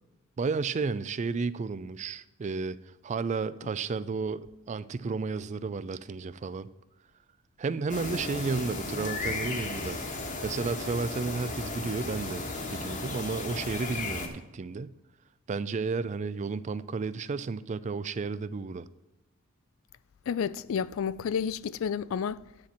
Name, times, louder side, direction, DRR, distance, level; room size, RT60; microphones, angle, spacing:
voice 1, 0.4-2.8 3.0-6.7 7.6-10.0 10.4-14.9 15.5-18.9, right 4 dB, 35° right, 0.3 m, -32 dB
sound 1, 7.9-14.3, left 3 dB, 35° left, 1.3 m, -35 dB
voice 2, 20.3-22.4, left 7 dB, 65° left, 0.3 m, -30 dB
9.7 x 4.3 x 7.5 m
head